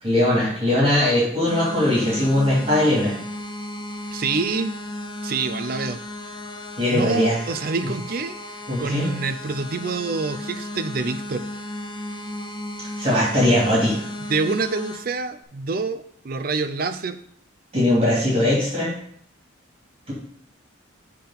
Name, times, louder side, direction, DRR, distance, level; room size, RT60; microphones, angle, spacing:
voice 1, 0.0-3.1 6.8-7.4 8.7-9.1 13.0-14.0 17.7-18.9, left 1 dB, 30° right, -6 dB, 2.7 m, -20 dB
sound 1, 1.5-15.0, left 1 dB, 20° left, 0.6 m, -34 dB
voice 2, 4.1-4.7 5.2-6.0 6.9-8.4 8.8-11.4 14.3-17.2, right 4 dB, 45° right, 10 dB, 0.5 m, -26 dB
6.9 x 3.8 x 5.7 m, 0.66 s
head